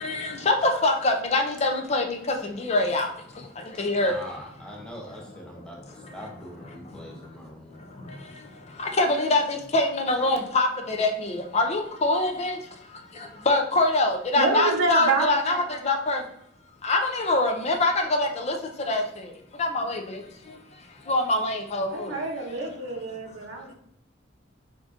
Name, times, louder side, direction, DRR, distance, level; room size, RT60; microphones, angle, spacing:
voice 1, 0.0-2.2 2.6-3.1 3.8-4.1 9.0-12.6 13.5-16.2 16.8-18.6 18.9-19.0 19.6-20.2 21.1-22.1, left 2 dB, 35° left, 5 dB, 0.5 m, -24 dB
voice 2, 4.0-5.8 6.1-7.8, equal, 5° left, -2 dB, 0.9 m, -42 dB
voice 3, 14.4-15.8 21.9-23.7, right 3 dB, 75° right, 1 dB, 0.8 m, -27 dB
3.7 x 3.6 x 2.5 m, 0.70 s
head